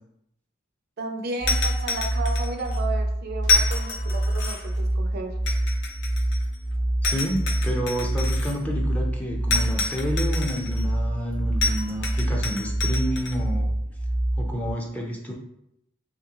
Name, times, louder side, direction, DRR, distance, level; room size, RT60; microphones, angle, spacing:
voice 1, 1.0-5.3, right 3 dB, 50° right, 4 dB, 0.5 m, -33 dB
sound 1, 1.4-14.7, right 1 dB, 30° left, 0.9 m, -26 dB
sound 2, 1.5-2.8 3.4-4.8 5.5-6.6 7.0-8.6 9.5-10.9 11.6-13.4, left 4 dB, 60° left, 0.6 m, -28 dB
voice 2, 7.0-13.7 14.4-15.3, equal, 5° left, -1 dB, 0.5 m, -30 dB
3.6 x 3.2 x 2.9 m, 0.79 s
head